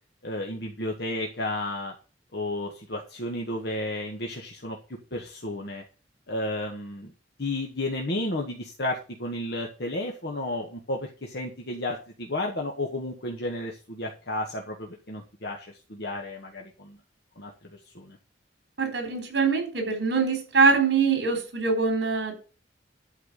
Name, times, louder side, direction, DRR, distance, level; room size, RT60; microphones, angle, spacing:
voice 1, 0.2-1.9 2.3-4.8 5.1-5.8 6.3-7.1 7.4-17.0 17.4-18.2, left 1 dB, 60° left, 1 dB, 1.7 m, -32 dB
voice 2, 18.8-22.3, right 4 dB, 65° right, 6 dB, 4.1 m, -23 dB
11.5 x 4.8 x 7.5 m, 0.35 s
head